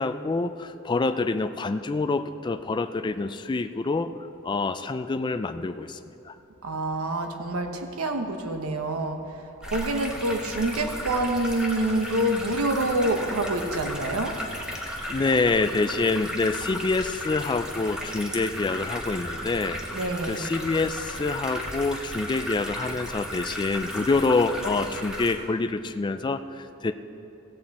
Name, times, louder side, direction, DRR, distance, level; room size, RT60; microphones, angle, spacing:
voice 1, 0.0-4.1 4.4-6.0 6.3-6.4 15.1-19.8 20.3-26.9, left 3 dB, 20° left, 9 dB, 0.3 m, -26 dB
voice 2, 6.6-9.2 9.7-14.3 19.9-20.5, right 1 dB, 90° right, 5 dB, 1.0 m, -27 dB
sound 1, 9.6-25.3, equal, 5° right, 1.0 m, -35 dB
16.5 x 7.8 x 4.2 m, 2.8 s
head